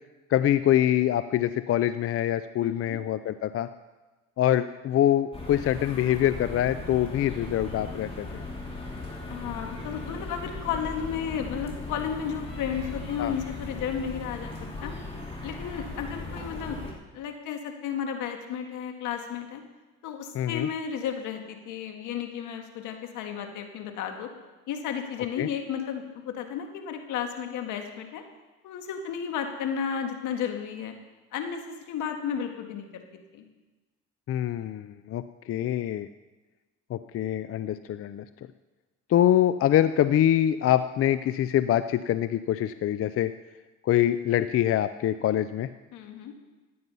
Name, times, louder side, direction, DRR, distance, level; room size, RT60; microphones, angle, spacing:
voice 1, 0.3-3.7 4.4-8.4 13.2-13.3 20.3-20.7 25.4-25.5 34.3-36.1 36.9-38.2 39.1-43.3 43.8-45.7, left 11 dB, 50° left, 12 dB, 0.5 m, -24 dB
voice 2, 2.6-3.0 9.3-14.5 14.8-14.9 15.4-16.8 17.1-19.6 20.0-24.3 24.7-28.2 28.6-30.9 31.3-33.0 33.3-33.4 45.9-46.3, left 8 dB, 80° left, 5 dB, 1.8 m, -33 dB
sound 1, 5.3-16.9, left 2 dB, 20° left, 3.3 m, -38 dB
15.0 x 9.5 x 5.5 m, 1.2 s
supercardioid pair, 85°, 30 cm